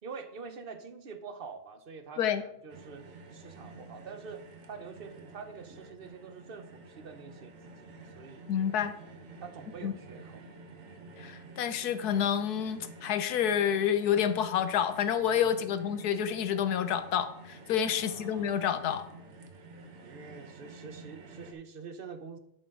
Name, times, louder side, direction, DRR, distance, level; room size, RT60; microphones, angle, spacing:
voice 1, 0.0-8.5 9.4-10.4 15.4-15.7 17.9-18.6 19.7-22.4, right 5 dB, 40° right, 9 dB, 1.0 m, -46 dB
sound 1, 2.7-21.5, right 3 dB, 55° right, 1.5 m, -50 dB
voice 2, 8.5-8.9 9.8-9.9 11.2-19.1, left 9 dB, 75° left, 11 dB, 1.4 m, -29 dB
11.0 x 8.6 x 3.8 m, 0.75 s
omnidirectional pair, 1.7 m